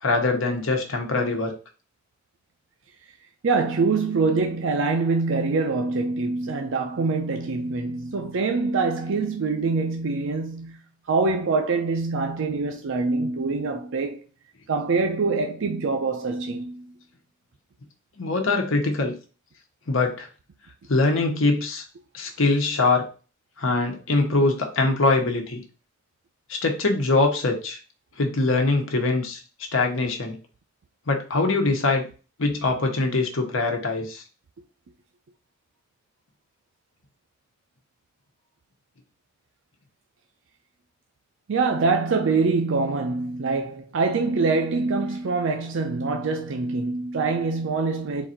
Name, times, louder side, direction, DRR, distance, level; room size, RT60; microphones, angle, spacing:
voice 1, 0.0-1.5 18.2-19.1 19.9-20.3 20.9-21.8 22.1-23.0 23.6-25.6 26.5-27.8 28.2-29.4 29.7-30.4 31.1-32.1 32.4-34.2, left 3 dB, 70° left, 1.0 m, -23 dB
voice 2, 3.4-10.8 11.1-14.2 14.7-16.9 41.5-48.2, right 4 dB, 65° right, 0.5 m, -24 dB
4.0 x 2.6 x 4.2 m
head